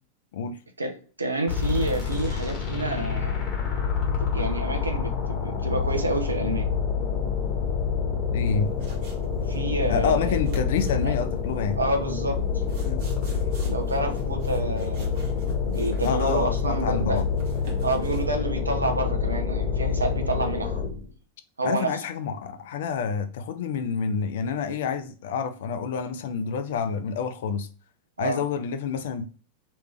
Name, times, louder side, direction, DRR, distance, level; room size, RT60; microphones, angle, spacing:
voice 1, 0.8-3.4 4.2-6.7 9.5-10.5 11.0-11.1 11.8-12.4 13.7-15.2 15.6-17.2 17.8-20.8 21.6-22.0 28.2-28.4, right 2 dB, 80° right, 0.8 m, -29 dB
sound 1, 1.5-21.1, left 6 dB, 30° left, 1.6 m, -27 dB
voice 2, 8.3-8.7 9.9-11.8 12.8-13.1 16.0-17.3 21.6-27.7 28.2-29.3, left 6 dB, 55° left, 0.5 m, -28 dB
sound 2, 8.4-18.3, right 7 dB, 50° right, 1.5 m, -44 dB
3.3 x 3.1 x 4.6 m
figure-of-eight pair, 90°, 0 cm